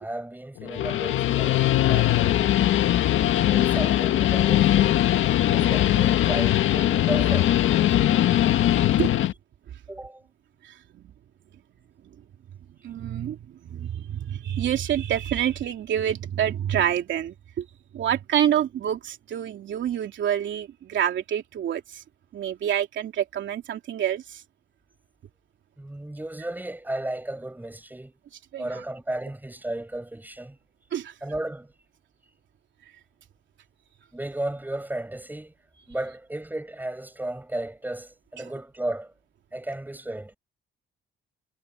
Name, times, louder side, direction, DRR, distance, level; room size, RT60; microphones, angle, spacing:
voice 1, 0.0-2.8 3.5-5.0 5.4-7.6 9.9-10.2 25.8-28.1 28.6-30.6 31.2-31.7 34.1-35.5 35.9-39.1 39.5-40.4, right 1 dB, 10° right, 5.7 m, -34 dB
Guitar, 0.6-9.3, left 13 dB, 80° left, 1.7 m, -21 dB
voice 2, 10.6-11.0 12.8-17.6 17.9-22.0 22.3-24.4 28.5-28.8 30.9-31.1, right 10 dB, 70° right, 3.1 m, -27 dB
cardioid pair, 90°, 20 cm